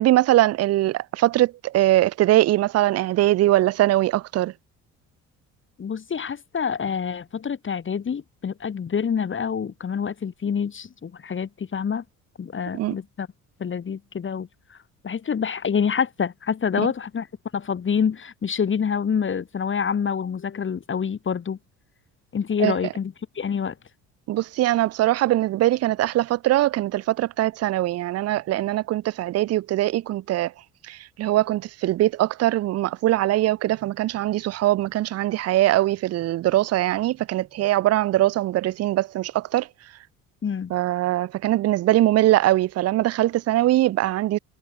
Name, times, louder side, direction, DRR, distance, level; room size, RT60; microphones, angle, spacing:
voice 1, 0.0-4.5 12.7-12.9 22.6-22.8 24.3-30.5 30.8-39.7 40.7-44.4, right 15 dB, 45° right, 0.5 m, -21 dB
voice 2, 5.8-12.0 12.4-13.3 13.6-14.8 15.0-17.3 17.5-21.6 22.3-23.8 40.4-40.7, left 7 dB, 35° left, 1.4 m, -27 dB
hypercardioid pair, 60°, 35 cm